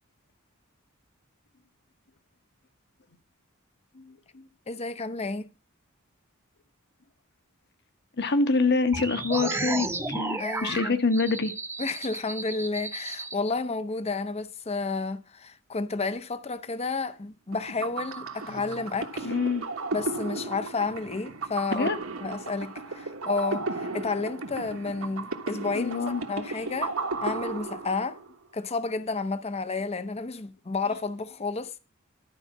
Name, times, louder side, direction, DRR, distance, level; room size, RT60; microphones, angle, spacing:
voice 1, 3.9-4.5 8.2-11.5 19.2-19.7 21.7-22.0 25.7-26.2, left 3 dB, 50° left, 1.1 m, -26 dB
voice 2, 4.7-5.5 10.4-11.0 11.8-19.3 19.9-21.9 22.2-26.0 26.3-26.9 27.2-28.2 28.5-31.8, left 3 dB, 30° left, 0.6 m, -31 dB
sound 1, 8.9-13.3, right 3 dB, 10° right, 0.8 m, -33 dB
sound 2, 17.5-28.3, right 3 dB, 70° right, 1.3 m, -35 dB
12.0 x 4.9 x 7.0 m
head